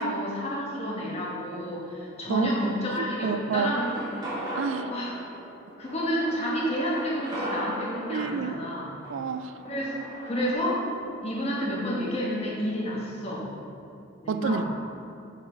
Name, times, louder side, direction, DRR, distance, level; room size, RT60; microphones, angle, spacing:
voice 1, 0.0-4.1 4.9-5.1 5.8-9.0 9.6-10.0 10.2-10.9 11.2-13.5 14.2-14.6, equal, 30° left, -4 dB, 1.1 m, -30 dB
voice 2, 3.0-3.7 4.5-4.9 8.1-8.6 9.1-9.5 14.3-14.8, right 6 dB, 75° right, 10 dB, 0.3 m, -29 dB
sound 1, 3.6-10.5, equal, 20° right, 1.3 m, -38 dB
5.6 x 5.0 x 4.6 m, 2.7 s
head